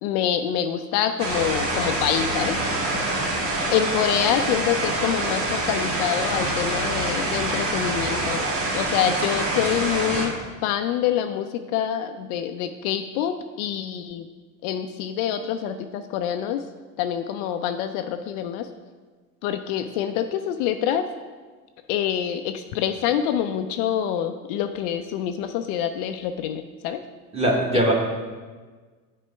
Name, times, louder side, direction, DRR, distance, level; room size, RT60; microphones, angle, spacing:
voice 1, 0.0-2.6 3.7-8.4 8.7-10.3 10.6-14.3 14.6-16.6 17.0-18.7 19.4-21.1 21.9-27.0, left 9 dB, 65° left, 8 dB, 0.5 m, -26 dB
sound 1, 1.2-10.3, right 2 dB, 60° right, 1.9 m, -26 dB
voice 2, 27.3-27.9, right 1 dB, 10° right, -2 dB, 1.4 m, -20 dB
7.5 x 4.3 x 3.3 m, 1.4 s
hypercardioid pair, 95°, 49 cm